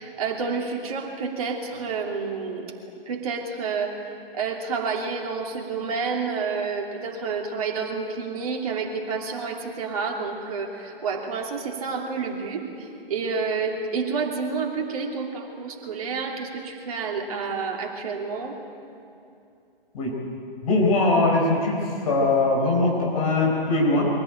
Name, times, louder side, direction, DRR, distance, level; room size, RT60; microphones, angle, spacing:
voice 1, 0.0-2.7 3.1-4.0 4.3-18.6, right 5 dB, 40° right, 0 dB, 3.0 m, -29 dB
voice 2, 20.6-21.8 22.0-24.1, left 2 dB, 40° left, -2 dB, 4.3 m, -21 dB
23.5 x 16.5 x 9.2 m, 2.6 s
figure-of-eight pair, 130°, 29 cm